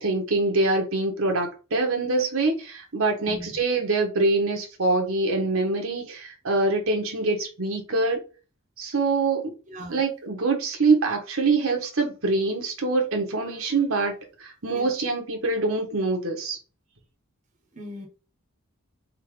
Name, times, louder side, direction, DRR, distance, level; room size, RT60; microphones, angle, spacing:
voice 1, 0.0-8.2 8.8-9.5 9.9-14.1 14.4-16.6, right 3 dB, 70° right, 1.3 m, -24 dB
voice 2, 3.0-3.5 9.7-10.0 14.7-14.9 17.7-18.1, equal, 35° right, 1.1 m, -39 dB
4.4 x 3.8 x 3.2 m
head